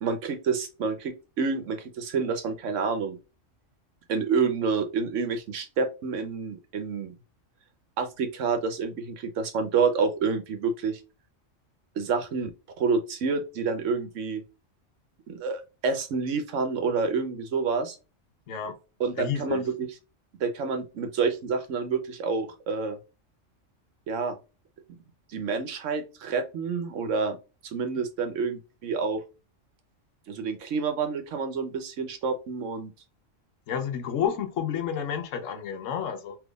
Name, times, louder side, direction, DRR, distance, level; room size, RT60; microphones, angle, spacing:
voice 1, 0.0-3.2 4.1-7.1 8.0-11.0 12.0-12.5 12.8-14.4 15.3-18.0 19.0-19.9 20.4-23.0 24.1-24.4 25.3-27.4 27.6-29.2 30.3-32.9, right 5 dB, 75° right, 1.1 m, -28 dB
voice 2, 18.5-18.8 19.2-19.6 33.7-36.4, left 8 dB, 80° left, 1.1 m, -30 dB
3.5 x 3.0 x 2.4 m
omnidirectional pair, 1.3 m